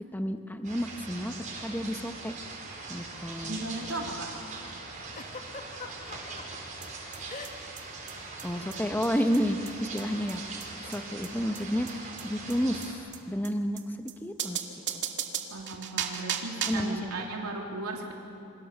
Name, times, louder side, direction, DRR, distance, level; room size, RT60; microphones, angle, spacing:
voice 1, 0.0-1.3 1.6-2.3 2.9-3.6 8.4-14.6 14.9-15.0 16.7-17.3, equal, 10° left, 6 dB, 1.1 m, -31 dB
sound 1, 0.6-12.9, right 3 dB, 35° right, 5.3 m, -41 dB
voice 2, 3.4-4.3 15.5-18.1, right 2 dB, 80° right, 0 dB, 3.4 m, -36 dB
Giggle, 5.1-6.4 7.3-7.8 8.0-8.3 9.2-9.4, left 4 dB, 35° left, 2.0 m, -42 dB
sound 2, 6.8-6.9 7.1-7.2 7.4-7.5 7.8-7.9 8.1-8.2 8.4-8.5 8.7-8.8 9.0-9.1 9.3-9.4 9.7-9.8 10.0-10.1 10.3-10.4 10.6-10.7 10.9-11.0 11.2-11.3 11.6-11.7 11.9-12.0 12.2-12.3 12.5-12.6 12.8-12.9 13.1-13.2 13.4-13.5 13.8-13.9 14.1-14.2 14.4-16.9, right 8 dB, 55° right, 2.2 m, -35 dB
27.5 x 26.0 x 7.2 m, 2.6 s
head